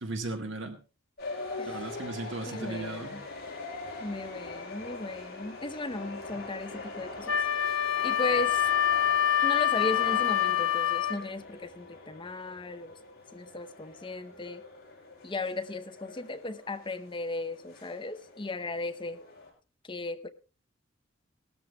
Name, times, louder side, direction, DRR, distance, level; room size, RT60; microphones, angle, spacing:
voice 1, 0.0-0.8 1.6-3.2 6.3-6.4, right 2 dB, 65° right, 4 dB, 1.7 m, -36 dB
sound 1, 1.2-19.5, left 3 dB, 50° left, 6.1 m, -43 dB
voice 2, 2.5-3.2 4.0-7.4 7.7-8.7 9.4-13.0 13.3-14.6 15.2-19.2 19.9-20.3, left 2 dB, 25° left, 8 dB, 0.8 m, -36 dB
Wind instrument woodwind instrument, 7.3-11.2, left 10 dB, 80° left, 1.0 m, -26 dB
19.0 x 13.5 x 2.3 m, 0.33 s
head